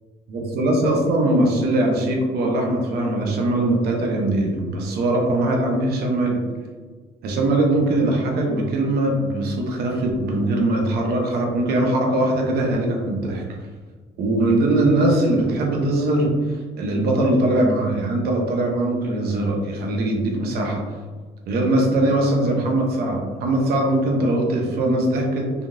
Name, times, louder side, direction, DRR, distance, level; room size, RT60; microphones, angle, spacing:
voice 1, 0.3-6.4 7.2-13.4 14.2-20.8 21.5-25.5, right 1 dB, 70° right, 0 dB, 0.8 m, -21 dB
3.6 x 2.4 x 2.4 m, 1.4 s
cardioid pair, 110°, 17 cm